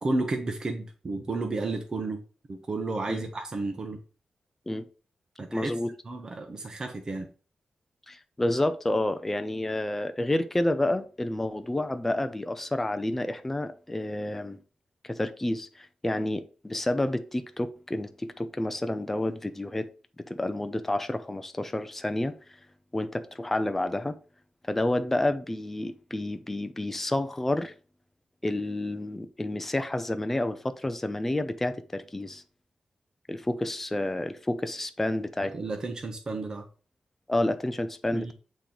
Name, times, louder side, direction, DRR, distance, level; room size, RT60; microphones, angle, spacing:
voice 1, 0.0-2.2 2.5-4.0 5.4-5.7 6.1-7.3 35.4-36.7 38.1-38.3, right 2 dB, 30° right, 0.8 m, -32 dB
voice 2, 5.5-5.9 8.1-14.6 15.0-19.9 20.3-22.3 22.9-24.2 24.7-27.7 28.4-32.4 33.3-35.5 37.3-38.3, left 1 dB, 10° left, 0.4 m, -29 dB
8.4 x 3.0 x 3.8 m
wide cardioid pair, 170°, 2 cm